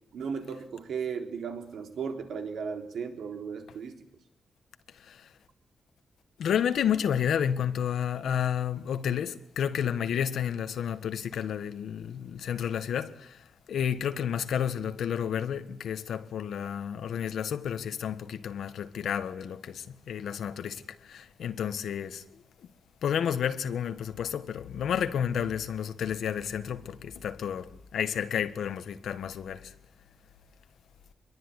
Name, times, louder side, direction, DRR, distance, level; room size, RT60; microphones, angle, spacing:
voice 1, 0.1-4.0, right 6 dB, 75° right, 3.8 m, -35 dB
voice 2, 4.9-5.3 6.4-22.2 23.0-29.7, left 8 dB, 85° left, 1.5 m, -31 dB
26.0 x 22.5 x 9.9 m
wide cardioid pair, 165°, 0 cm